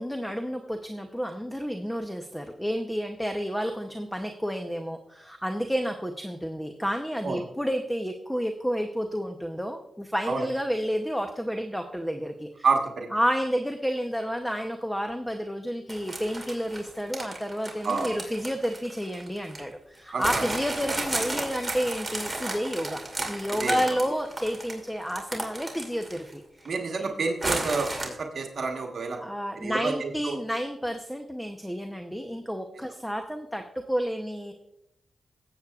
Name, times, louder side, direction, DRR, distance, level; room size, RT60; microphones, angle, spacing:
voice 1, 0.0-12.7 13.1-23.0 23.3-27.0 29.2-34.5, equal, 5° left, 5 dB, 0.8 m, -30 dB
voice 2, 12.6-13.1 17.8-18.2 20.1-20.4 23.6-23.9 26.6-29.2 29.6-30.4, right 4 dB, 65° right, 2 dB, 1.3 m, -29 dB
sound 1, 15.9-19.6 20.2-26.3 26.6-26.7 27.4-28.1, right 2 dB, 15° right, 2.6 m, -33 dB
17.5 x 8.1 x 2.4 m, 0.83 s
cardioid pair, 75°, 0 cm